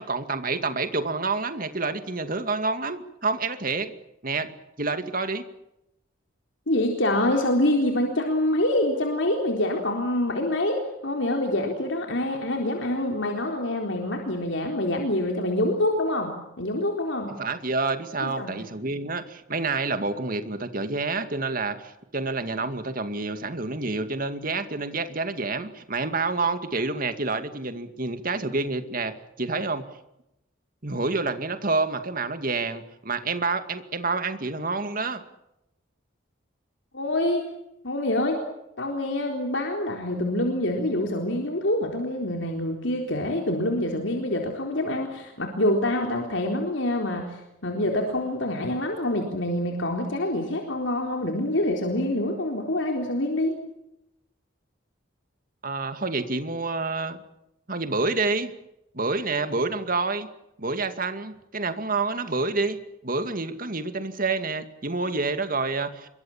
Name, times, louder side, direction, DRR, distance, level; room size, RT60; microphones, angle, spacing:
voice 1, 0.0-3.9 4.2-4.5 4.8-5.4 17.4-29.9 30.8-35.2 55.6-57.2 57.7-58.5 58.9-60.3 60.6-62.8 63.0-66.1, right 3 dB, 45° right, 9 dB, 2.3 m, -28 dB
voice 2, 6.7-17.3 18.2-18.5 36.9-37.4 37.8-38.4 38.8-53.5, left 1 dB, 70° left, 2 dB, 4.0 m, -26 dB
26.5 x 23.5 x 7.3 m, 0.86 s
head